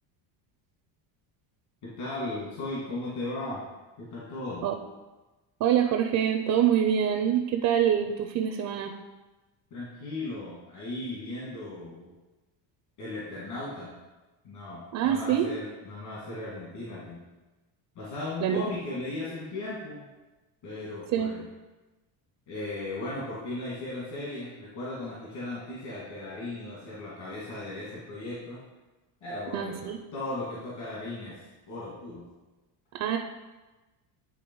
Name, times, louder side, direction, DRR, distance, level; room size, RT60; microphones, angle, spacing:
voice 1, 1.8-3.6 4.0-4.7 9.7-12.1 13.0-14.0 14.4-17.2 18.0-20.1 20.6-21.5 22.5-28.6 29.2-31.4 31.7-32.3, left 2 dB, 55° left, -8 dB, 2.3 m, -37 dB
voice 2, 5.6-8.9 14.9-15.5 18.4-18.8 21.1-21.3 29.5-30.0 32.9-33.2, right 9 dB, 40° right, 4 dB, 0.4 m, -25 dB
9.8 x 3.3 x 4.6 m, 1.2 s
cardioid pair, 150°, 48 cm